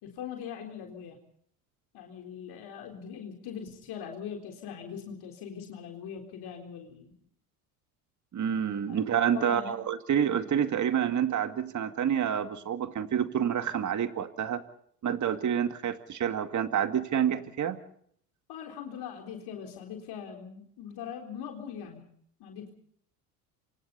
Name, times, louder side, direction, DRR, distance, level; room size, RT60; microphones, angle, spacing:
voice 1, 0.0-1.2 1.9-7.1 8.9-9.0 9.3-9.8 18.5-22.0 22.4-22.7, left 8 dB, 55° left, 2 dB, 4.0 m, -41 dB
voice 2, 8.3-14.6 15.0-17.8, right 8 dB, 40° right, 9 dB, 2.2 m, -28 dB
28.0 x 25.0 x 4.1 m, 0.64 s
hypercardioid pair, 70°, 46 cm